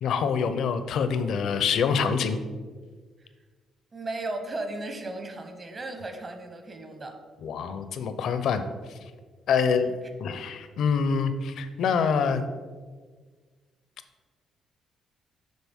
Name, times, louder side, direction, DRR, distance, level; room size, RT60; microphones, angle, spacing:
voice 1, 0.0-2.4 7.4-8.6 8.9-9.0 9.5-9.9 10.2-12.4, left 6 dB, 75° left, 10 dB, 0.6 m, -25 dB
voice 2, 3.9-7.2 9.7-9.9, right 2 dB, 35° right, 6 dB, 1.0 m, -36 dB
10.5 x 3.9 x 3.6 m, 1.5 s
cardioid pair, 90°, 0 cm